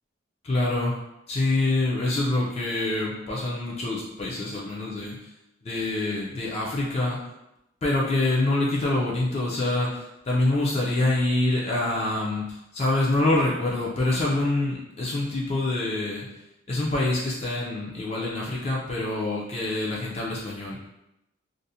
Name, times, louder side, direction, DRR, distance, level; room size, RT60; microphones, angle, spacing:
voice 1, 0.4-1.0 1.3-5.2 5.6-7.2 7.8-16.2 16.7-20.8, left 2 dB, 30° left, -4 dB, 0.4 m, -26 dB
2.5 x 2.0 x 2.6 m, 0.88 s
head